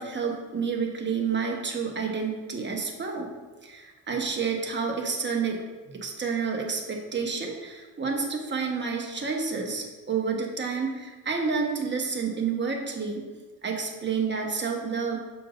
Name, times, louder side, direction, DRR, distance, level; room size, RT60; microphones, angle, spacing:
voice 1, 0.0-3.3 3.6-5.6 5.9-13.3 13.6-15.2, right 5 dB, 30° right, 1 dB, 1.1 m, -29 dB
6.8 x 6.2 x 2.5 m, 1.3 s
cardioid pair, 105°, 37 cm